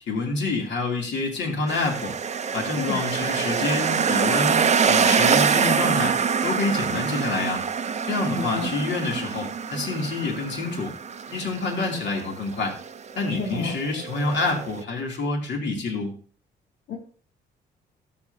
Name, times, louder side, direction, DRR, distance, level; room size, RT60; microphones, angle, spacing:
voice 1, 0.0-2.1 2.5-6.2 6.4-7.6 8.0-10.9 11.3-12.7 13.1-16.1, left 3 dB, 65° left, 0 dB, 2.8 m, -27 dB
sound 1, 1.7-14.8, right 6 dB, 35° right, 0.6 m, -25 dB
voice 2, 8.3-8.7 13.3-13.7 16.9-17.0, left 5 dB, 85° left, -4 dB, 2.3 m, -30 dB
13.0 x 7.9 x 2.8 m, 0.43 s
supercardioid pair, 65°, 20 cm